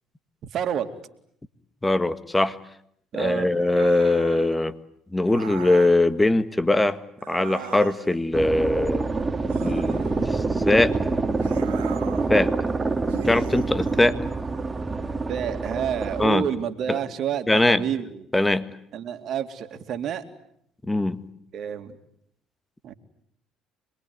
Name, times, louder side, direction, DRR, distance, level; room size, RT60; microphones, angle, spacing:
voice 1, 0.5-0.9 3.1-3.5 15.3-18.3 18.9-20.2 21.5-22.0 22.8-22.9, right 9 dB, 60° right, 7 dB, 2.5 m, -29 dB
voice 2, 1.8-2.6 3.1-4.7 5.1-7.0 7.3-9.1 9.6-10.4 10.7-11.0 12.3-12.5 13.3-14.2 16.2-16.4 16.9-17.0 17.5-17.8 18.3-18.7 20.9-21.2, left 2 dB, 15° left, 12 dB, 1.7 m, -21 dB
sound 1, 3.6-4.5 5.3-6.0 7.2-8.2 9.5-10.6 11.4-12.3 13.1-14.1, right 11 dB, 90° right, 1.7 m, -40 dB
sound 2, 8.3-16.3, right 3 dB, 20° right, 2.3 m, -26 dB
26.5 x 21.5 x 9.6 m, 0.71 s
hypercardioid pair, 70°, 0 cm